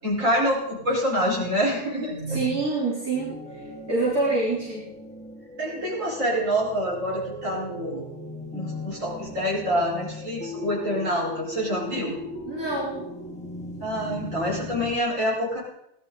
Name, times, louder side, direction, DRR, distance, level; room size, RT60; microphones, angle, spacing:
voice 1, 0.0-2.5 5.6-8.1 8.5-12.2 13.8-15.6, equal, 55° right, -5 dB, 5.6 m, -26 dB
voice 2, 2.3-3.6 3.9-4.9 12.5-13.0, right 3 dB, 70° right, -8 dB, 4.5 m, -26 dB
sound 1, 3.1-15.0, left 2 dB, 5° left, 1.5 m, -38 dB
18.5 x 12.0 x 4.0 m, 0.79 s
omnidirectional pair, 1.6 m